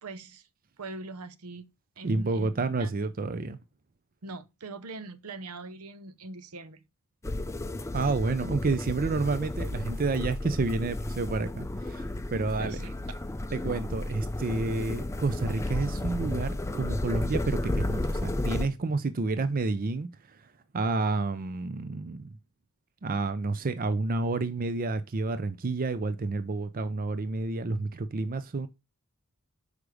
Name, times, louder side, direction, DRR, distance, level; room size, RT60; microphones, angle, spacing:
voice 1, 0.0-0.5 0.8-1.7 2.0-2.5 2.8-3.0 4.2-6.8 12.6-13.0, right 3 dB, 80° right, 0.8 m, -42 dB
voice 2, 2.0-3.6 7.9-12.1 12.3-12.8 13.5-20.1 20.7-22.3 23.0-28.7, right 3 dB, 40° right, 0.5 m, -29 dB
sound 1, 7.2-18.7, left 1 dB, 15° left, 0.5 m, -33 dB
6.6 x 5.0 x 4.8 m
head